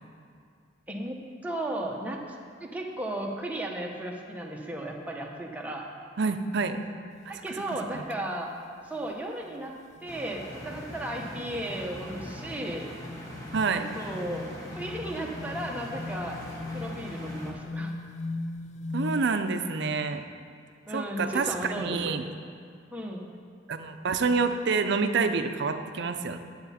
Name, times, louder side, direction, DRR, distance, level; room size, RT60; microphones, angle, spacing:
voice 1, 0.9-1.2 1.4-2.2 2.6-5.9 7.3-8.5 8.8-9.7 10.0-12.9 13.7-16.4 16.7-17.9 20.9-22.1 22.9-23.3, right 1 dB, 10° right, 0 dB, 0.9 m, -35 dB
voice 2, 6.2-6.8 7.3-7.4 7.9-8.0 13.5-13.8 18.9-20.2 20.9-21.5 21.7-22.3 23.7-26.4, right 4 dB, 65° right, 8 dB, 0.6 m, -27 dB
sound 1, 7.1-7.4 7.8-8.1 8.5-8.6 8.9-9.1 9.5-19.3, left 2 dB, 40° left, 0.4 m, -40 dB
sound 2, 10.1-17.5, left 1 dB, 20° left, 1.5 m, -41 dB
10.5 x 8.0 x 4.2 m, 2.2 s
head